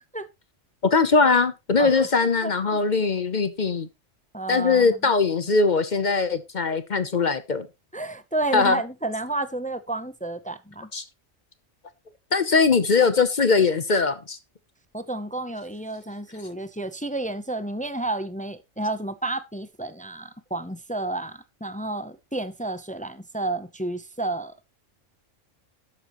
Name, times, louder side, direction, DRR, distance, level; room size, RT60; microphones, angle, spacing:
voice 1, 0.8-3.9 4.5-7.7 8.5-8.8 10.9-11.0 12.3-14.4, left 4 dB, 40° left, 0.8 m, -21 dB
voice 2, 2.4-2.8 4.3-5.0 7.9-10.9 14.9-24.5, right 2 dB, 10° left, 0.4 m, -31 dB
12.0 x 8.4 x 3.0 m
omnidirectional pair, 1.3 m